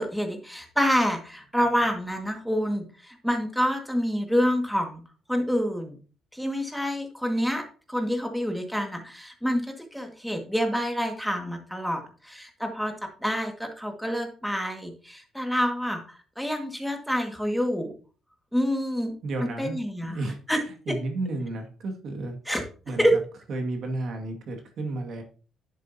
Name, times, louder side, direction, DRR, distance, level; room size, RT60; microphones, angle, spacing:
voice 1, 0.0-5.0 5.3-6.0 6.3-12.9 13.2-17.9 18.5-20.2 20.5-20.6 20.9-21.0 22.5-22.6 23.0-23.2, equal, ahead, 3 dB, 1.9 m, -27 dB
voice 2, 19.2-19.8 20.0-20.4 20.9-22.4 22.9-23.2 23.5-25.2, right 2 dB, 60° right, 3 dB, 2.1 m, -32 dB
10.5 x 7.7 x 2.8 m, 0.37 s
cardioid pair, 120°, 0 cm